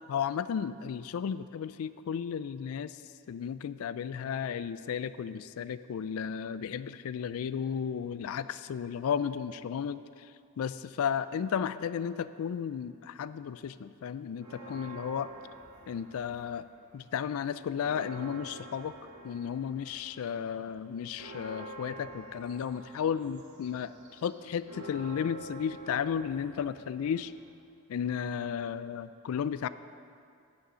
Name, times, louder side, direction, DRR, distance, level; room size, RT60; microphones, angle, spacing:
voice 1, 0.1-3.0 3.3-10.0 10.6-15.3 15.9-16.6 16.9-18.9 19.2-23.9 24.2-27.3 27.9-29.7, left 7 dB, 75° left, 15 dB, 0.3 m, -34 dB
sound 1, 14.4-16.7 17.1-27.6, right 1 dB, 80° right, 1.5 m, -48 dB
9.5 x 6.4 x 5.6 m, 2.4 s
head